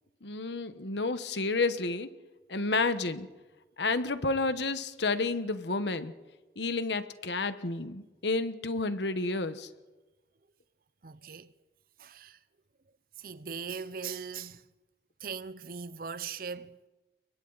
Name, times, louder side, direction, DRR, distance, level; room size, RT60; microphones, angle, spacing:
voice 1, 0.2-2.1 2.5-3.3 3.8-6.1 6.6-9.7, left 3 dB, 75° left, 1.2 m, -30 dB
voice 2, 11.0-11.5 12.0-12.4 13.2-14.6 15.2-16.9, right 6 dB, 50° right, 0.7 m, -40 dB
29.0 x 23.0 x 4.1 m
head